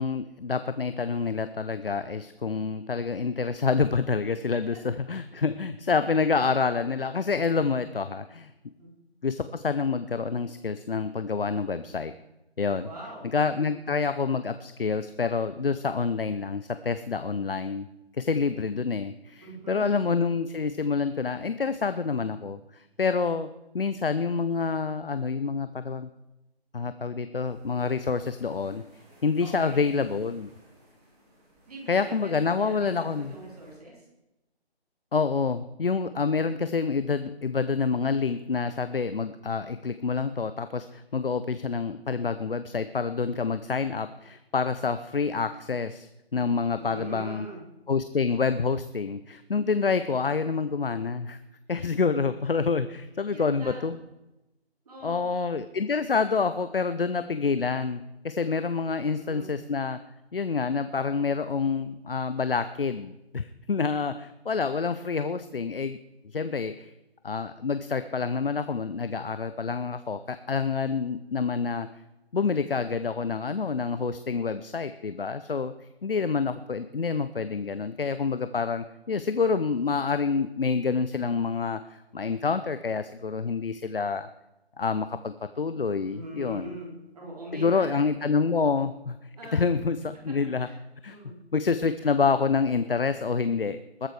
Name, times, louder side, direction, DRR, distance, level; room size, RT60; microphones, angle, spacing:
voice 1, 0.0-8.5 9.2-12.1 12.6-12.9 13.3-17.9 18.2-23.5 23.7-26.1 26.7-28.8 29.2-30.5 31.9-33.3 35.1-47.5 47.9-51.4 51.7-54.0 55.0-60.0 60.3-66.0 66.3-66.9 67.2-71.9 72.3-75.7 76.0-84.3 84.8-86.7 87.5-89.2 89.5-90.7 91.0-91.2 91.5-94.1, left 5 dB, 60° left, 11 dB, 0.8 m, -27 dB
voice 2, 12.8-13.3 13.5-13.8 19.4-19.8 29.4-29.8 31.6-34.1 46.8-47.6 51.8-51.9 53.3-54.0 54.8-55.3 58.9-59.5 86.1-88.0 88.5-88.8 89.4-89.7 90.6-90.8 91.1-91.4, right 2 dB, 35° right, -2 dB, 4.2 m, -42 dB
sound 1, 27.4-33.8, right 1 dB, 15° right, 2.2 m, -58 dB
21.0 x 7.7 x 4.7 m, 0.94 s
figure-of-eight pair, 155°, 32 cm